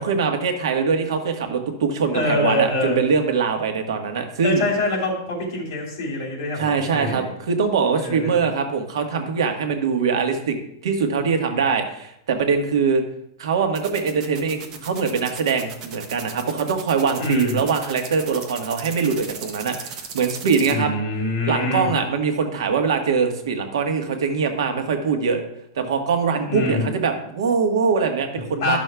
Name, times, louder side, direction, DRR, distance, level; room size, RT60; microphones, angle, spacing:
voice 1, 0.0-4.6 6.6-10.6 10.8-13.0 13.4-20.9 21.5-25.4 25.7-28.8, right 5 dB, 85° right, 5 dB, 1.2 m, -22 dB
voice 2, 2.1-3.0 4.4-7.3 8.0-8.4 17.2-17.6 20.7-21.9 26.5-26.9 28.6-28.8, left 1 dB, 45° left, -4 dB, 3.0 m, -24 dB
sound 1, 13.7-20.7, right 7 dB, 20° right, 0.6 m, -36 dB
12.0 x 6.2 x 2.3 m, 0.76 s
supercardioid pair, 180°, 2 cm